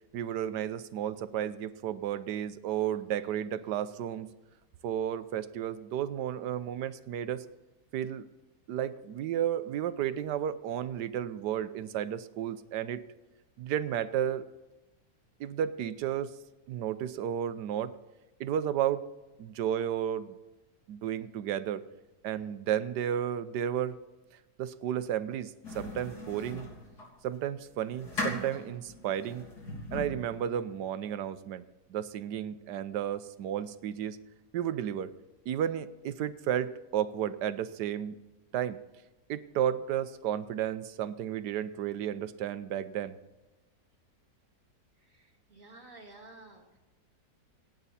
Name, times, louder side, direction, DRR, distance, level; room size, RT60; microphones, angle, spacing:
voice 1, 0.1-4.3 4.8-7.4 7.9-8.2 8.7-13.0 13.6-14.4 15.4-16.4 16.7-17.9 18.4-19.1 19.4-20.4 20.9-21.8 22.2-24.0 24.6-26.7 27.2-29.4 29.9-31.6 31.9-34.2 34.5-35.1 35.5-38.2 38.5-38.8 39.3-43.1, right 10 dB, 85° right, 13 dB, 1.3 m, -32 dB
sound 1, 25.6-27.1 27.6-30.4, left 2 dB, 70° left, 3.7 m, -39 dB
voice 2, 45.1-46.8, right 2 dB, 50° right, 2 dB, 2.5 m, -52 dB
27.0 x 9.3 x 4.2 m, 1.1 s
omnidirectional pair, 1.8 m